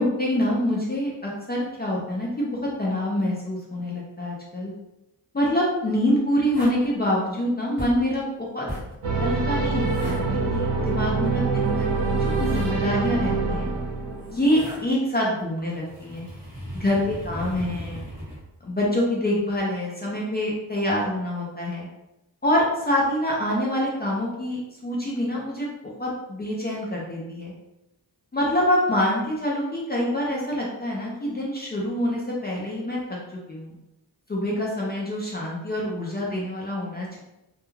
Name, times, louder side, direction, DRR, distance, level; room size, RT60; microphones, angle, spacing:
voice 1, 0.0-2.5 2.8-4.7 5.3-8.7 9.1-13.7 14.3-16.3 16.7-18.0 18.6-21.9 22.4-25.7 26.0-27.5 28.3-33.2 33.5-33.8 34.3-37.2, left 1 dB, 25° left, -5 dB, 0.4 m, -26 dB
sound 1, 6.5-6.9 7.8-8.1 8.7-9.0 9.8-10.2 11.8-12.8 14.0-14.8 15.4-18.4 19.3-19.6, equal, 5° right, 0.8 m, -38 dB
sound 2, 9.0-14.6, right 3 dB, 75° right, 0.7 m, -25 dB
2.3 x 2.3 x 3.0 m, 0.93 s
wide cardioid pair, 175°, 42 cm